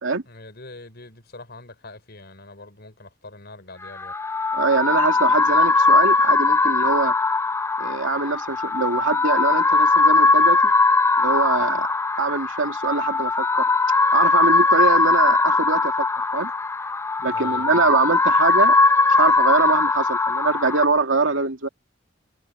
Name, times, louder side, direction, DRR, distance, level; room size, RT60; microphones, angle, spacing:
voice 1, 0.3-4.1 17.2-17.9, left 2 dB, 55° left, 5.3 m, -43 dB
sound 1, 3.8-20.8, left 3 dB, 15° left, 0.3 m, -20 dB
voice 2, 4.5-7.1 7.8-10.7 11.2-11.9 12.1-13.7 14.1-16.1 16.3-16.5 17.2-18.8 19.1-21.7, right 4 dB, 85° right, 2.5 m, -23 dB
head